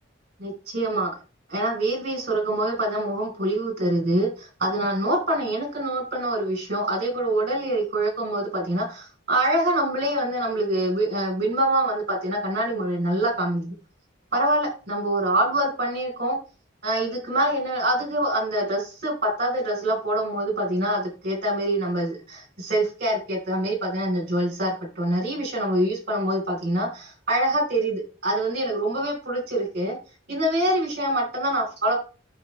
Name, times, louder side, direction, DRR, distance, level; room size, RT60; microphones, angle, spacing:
voice 1, 0.4-1.1 1.5-13.7 14.3-16.4 16.8-30.0 30.3-32.0, right 1 dB, 50° right, 1 dB, 4.6 m, -25 dB
9.0 x 6.7 x 3.4 m, 0.34 s
head